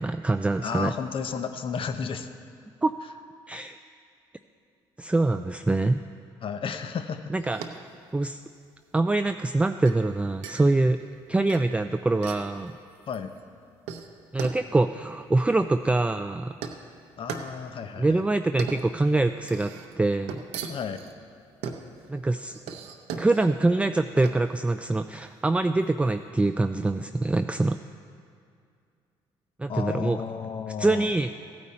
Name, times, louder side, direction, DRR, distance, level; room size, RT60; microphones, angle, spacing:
voice 1, 0.0-0.9 2.8-2.9 3.5-3.8 5.0-6.0 7.3-7.8 8.1-8.4 8.9-11.0 11.3-12.7 14.3-16.5 18.0-20.4 22.1-22.5 23.2-27.8 29.6-30.2 30.8-31.3, right 2 dB, 10° right, 8 dB, 0.4 m, -24 dB
voice 2, 0.6-2.3 6.4-7.3 13.1-13.3 17.2-18.2 20.7-21.0 29.7-31.1, left 6 dB, 55° left, 8 dB, 0.8 m, -33 dB
sound 1, 7.4-26.2, right 6 dB, 85° right, 0.8 m, -41 dB
15.0 x 9.3 x 4.3 m, 2.3 s
supercardioid pair, 60°, 11 cm